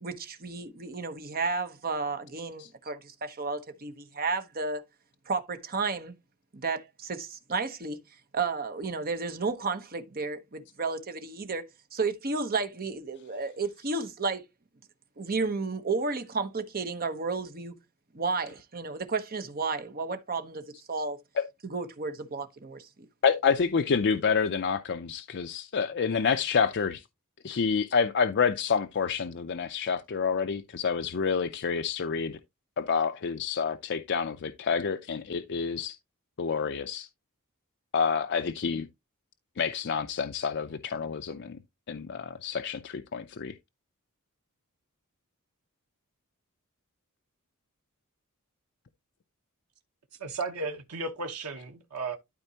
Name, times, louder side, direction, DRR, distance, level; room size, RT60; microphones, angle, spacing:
voice 1, 0.0-4.8 5.3-6.1 6.5-8.0 8.3-11.6 11.9-14.4 15.2-17.7 18.1-20.6 20.9-21.2 21.6-22.9, right 4 dB, 40° right, 1.1 m, -32 dB
voice 2, 23.2-27.0 27.4-32.4 32.8-36.0 36.4-37.1 37.9-38.9 39.6-41.6 41.9-43.5, left 6 dB, 50° left, 0.5 m, -28 dB
voice 3, 50.2-52.2, right 3 dB, 90° right, 1.1 m, -34 dB
12.0 x 4.4 x 2.9 m
head